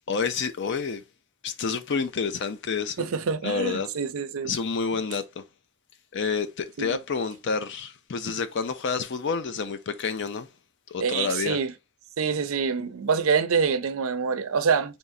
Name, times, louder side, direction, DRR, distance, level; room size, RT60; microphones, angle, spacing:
voice 1, 0.1-1.0 1.4-3.1 3.4-3.9 4.4-5.4 6.1-10.5 10.9-11.6, left 5 dB, 55° left, 0.5 m, -29 dB
voice 2, 3.0-4.5 6.8-7.0 11.0-11.7 12.2-15.0, right 5 dB, 70° right, 0.5 m, -26 dB
4.1 x 3.5 x 2.6 m
head